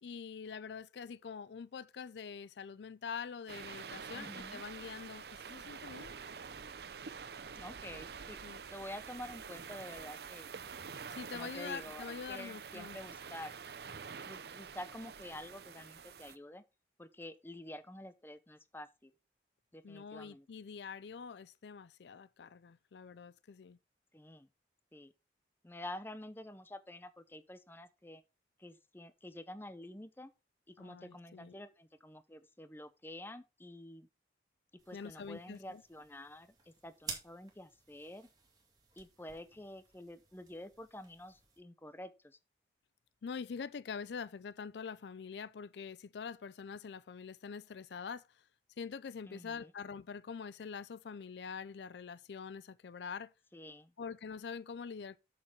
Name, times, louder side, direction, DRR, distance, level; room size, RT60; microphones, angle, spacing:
voice 1, 0.0-6.2 8.4-8.6 11.1-13.0 19.8-23.8 30.8-31.6 34.9-35.8 43.2-48.4 48.8-53.3 54.0-55.2, left 6 dB, 75° left, 0.4 m, -45 dB
sound 1, 3.5-16.4, right 6 dB, 65° right, 0.6 m, -47 dB
voice 2, 4.1-4.6 7.6-8.4 8.7-10.5 11.3-13.5 14.3-16.6 17.0-19.1 19.7-20.5 24.1-24.5 24.9-25.1 25.6-28.2 28.6-30.3 30.8-34.1 34.9-38.3 39.0-42.4 49.3-49.7 53.5-53.9, left 1 dB, 10° left, 0.6 m, -48 dB
sound 2, 34.8-41.6, right 5 dB, 20° right, 2.2 m, -52 dB
7.7 x 6.6 x 4.4 m
head